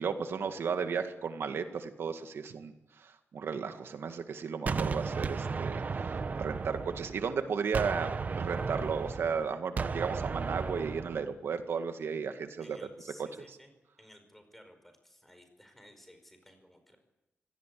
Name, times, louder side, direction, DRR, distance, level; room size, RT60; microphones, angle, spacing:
voice 1, 0.0-12.8 13.2-13.3, right 6 dB, 80° right, 7 dB, 2.0 m, -34 dB
Gunshot gunfire, 4.7-7.4 7.7-11.3, right 4 dB, 45° right, 1.0 m, -34 dB
voice 2, 12.6-13.7 14.0-17.0, equal, 5° left, 7 dB, 5.0 m, -56 dB
25.0 x 17.5 x 8.5 m, 0.95 s
wide cardioid pair, 160°, 4 cm